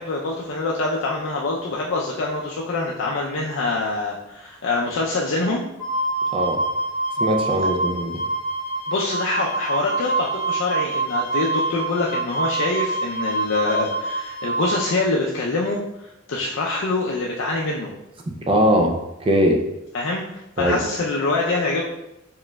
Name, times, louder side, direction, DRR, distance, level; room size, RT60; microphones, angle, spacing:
voice 1, 0.0-5.6 8.9-17.9 19.9-21.8, left 3 dB, 75° left, -3 dB, 0.5 m, -25 dB
Wind instrument woodwind instrument, 5.8-14.8, right 3 dB, 15° left, 1.3 m, -26 dB
voice 2, 7.2-8.2 18.3-19.6 20.6-20.8, equal, 25° right, 2 dB, 0.4 m, -20 dB
4.8 x 3.2 x 2.2 m, 0.88 s
head